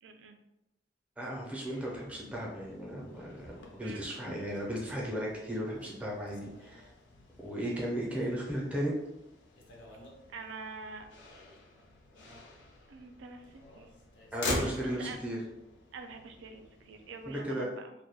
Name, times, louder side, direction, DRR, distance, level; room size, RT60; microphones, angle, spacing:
voice 1, 0.0-0.4 3.8-4.1 7.6-7.9 10.3-11.1 12.9-13.9 14.6-15.2 15.9-17.9, right 4 dB, 80° right, 7 dB, 0.3 m, -46 dB
voice 2, 1.2-6.9 7.4-8.9 14.3-15.4 17.3-17.7, equal, 5° right, -3 dB, 0.5 m, -35 dB
Motor vehicle (road), 1.6-17.5, left 1 dB, 80° left, 0.5 m, -45 dB
2.2 x 2.1 x 2.8 m, 0.90 s
head